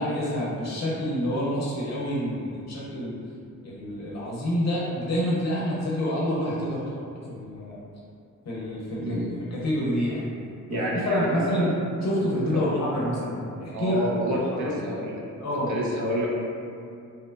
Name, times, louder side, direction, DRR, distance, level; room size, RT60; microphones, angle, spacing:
voice 1, 0.0-3.2 3.6-6.8 7.3-7.8 8.4-9.2 9.5-10.2 10.7-14.8 15.4-15.7, equal, 60° left, -6 dB, 0.6 m, -27 dB
voice 2, 10.7-11.7 12.3-12.6 13.7-15.2 15.7-16.3, right 1 dB, 70° right, -4 dB, 0.5 m, -29 dB
2.9 x 2.1 x 2.2 m, 2.4 s
wide cardioid pair, 160°, 31 cm